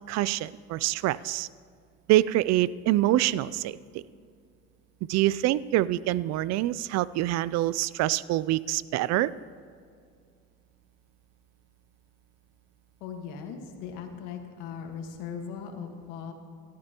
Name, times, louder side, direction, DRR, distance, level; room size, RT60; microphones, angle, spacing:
voice 1, 0.1-1.5 2.1-4.0 5.1-9.3, right 15 dB, 60° right, 19 dB, 0.4 m, -25 dB
voice 2, 13.0-16.3, left 7 dB, 90° left, 4 dB, 1.7 m, -39 dB
17.5 x 12.0 x 3.0 m, 2.2 s
supercardioid pair, 100°, 30 cm